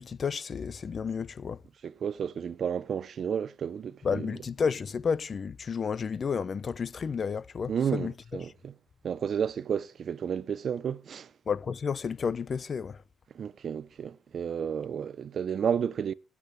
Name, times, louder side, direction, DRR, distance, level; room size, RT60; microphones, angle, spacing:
voice 1, 0.0-1.6 4.0-8.1 11.5-13.0, left 6 dB, 45° left, 0.9 m, -31 dB
voice 2, 1.8-4.3 7.7-8.7 9.0-11.3 13.3-16.1, right 7 dB, 55° right, 0.8 m, -32 dB
17.5 x 8.7 x 8.2 m
cardioid pair, 90°, 0 cm